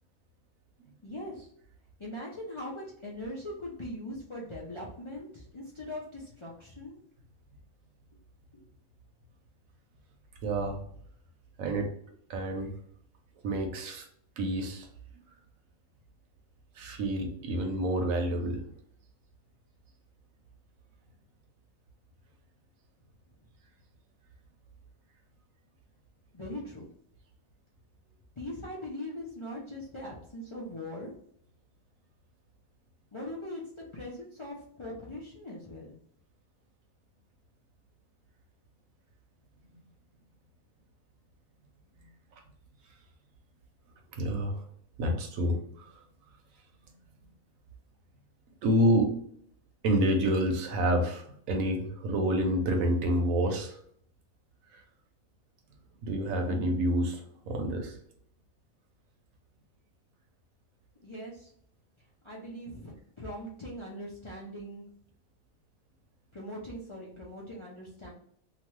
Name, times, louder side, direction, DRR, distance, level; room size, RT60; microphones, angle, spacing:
voice 1, 1.0-1.5 2.0-7.0 8.5-8.6 26.3-26.9 28.4-31.1 33.1-36.0 61.0-61.5 62.2-64.9 66.3-68.1, left 1 dB, 45° left, -5 dB, 0.3 m, -41 dB
voice 2, 10.4-10.8 11.6-11.9 12.3-12.7 13.4-14.1 14.4-14.9 16.8-18.6 44.1-44.6 45.0-45.9 48.6-49.1 49.8-53.8 56.0-57.9, equal, 75° right, 4 dB, 1.1 m, -28 dB
2.9 x 2.3 x 3.0 m, 0.64 s
omnidirectional pair, 1.4 m